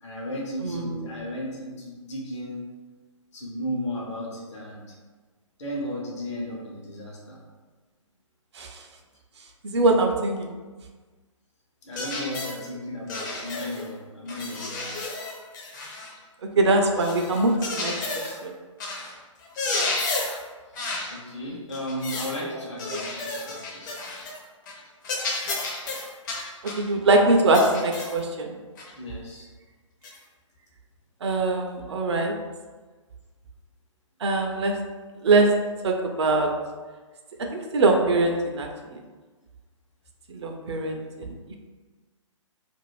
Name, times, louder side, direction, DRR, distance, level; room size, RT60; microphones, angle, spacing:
voice 1, 0.0-2.6 3.3-4.8 5.6-7.4 11.8-14.9 21.1-24.0 28.9-29.5, equal, 60° left, -3 dB, 0.8 m, -34 dB
voice 2, 0.6-1.1 8.5-8.8 9.6-10.5 16.6-17.9 18.2-18.5 22.9-23.0 26.7-28.6 31.2-32.3 34.2-34.8 35.2-35.5 35.8-36.5 37.5-39.0 40.3-41.6, right 2 dB, 55° right, 3 dB, 0.5 m, -23 dB
sound 1, 11.9-12.6 13.1-13.9 14.3-16.2 16.9-18.4 18.8-19.1 19.4-20.4 20.7-21.1 21.7-22.4 22.8-24.4 24.7-24.8 25.0-26.9 27.5-28.2 28.8-28.9 30.0-30.2, left 2 dB, 35° left, 0.6 m, -32 dB
2.6 x 2.4 x 3.0 m, 1.3 s
figure-of-eight pair, 130°, 17 cm